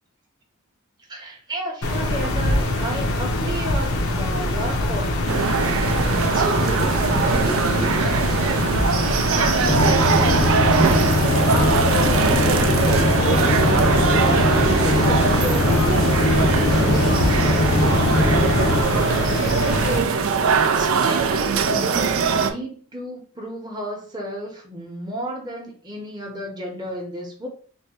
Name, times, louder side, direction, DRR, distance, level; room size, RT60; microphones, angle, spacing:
voice 1, 1.1-5.9 6.3-6.7 7.2-8.2 9.3-10.9 11.5-13.6 14.0-27.5, right 1 dB, 20° right, 0 dB, 0.8 m, -33 dB
sound 1, 1.8-20.0, left 1 dB, 90° left, 0.7 m, -24 dB
sound 2, 5.3-22.5, right 5 dB, 75° right, 0.4 m, -21 dB
sound 3, 9.6-18.8, left 2 dB, 45° left, 0.5 m, -21 dB
3.5 x 2.1 x 4.1 m, 0.43 s
head